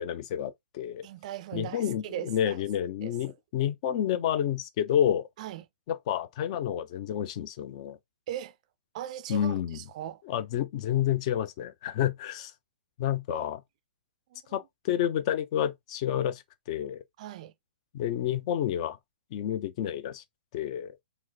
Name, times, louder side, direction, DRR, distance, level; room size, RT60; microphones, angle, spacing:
voice 1, 0.0-1.1 1.5-5.3 5.9-8.0 9.3-9.8 10.3-12.5 13.0-13.6 14.5-16.4 16.7-17.0 17.9-19.0 19.3-20.2 20.5-20.9, left 10 dB, 35° left, 0.4 m, -29 dB
voice 2, 1.0-2.6 3.0-3.1 5.4-5.7 8.3-8.6 8.9-10.2 13.3-13.5 14.3-14.7 17.2-17.5, right 12 dB, 40° right, 0.4 m, -39 dB
4.4 x 2.0 x 2.5 m
figure-of-eight pair, 115°, 6 cm